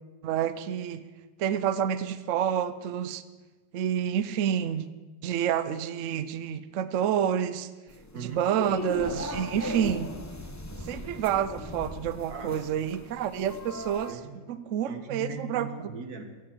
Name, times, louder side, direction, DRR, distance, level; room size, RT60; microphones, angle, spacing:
voice 1, 0.2-1.0 1.4-3.2 3.7-4.9 5.2-7.7 8.1-10.1 10.8-14.2 14.5-15.7, right 9 dB, 70° right, 13 dB, 0.7 m, -28 dB
sound 1, 7.9-14.1, left 1 dB, 20° left, 0.5 m, -38 dB
voice 2, 8.1-8.5 12.3-12.9 14.1-14.5 14.9-16.2, right 4 dB, 55° right, 5 dB, 2.0 m, -40 dB
15.5 x 8.7 x 7.4 m, 1.2 s
omnidirectional pair, 2.0 m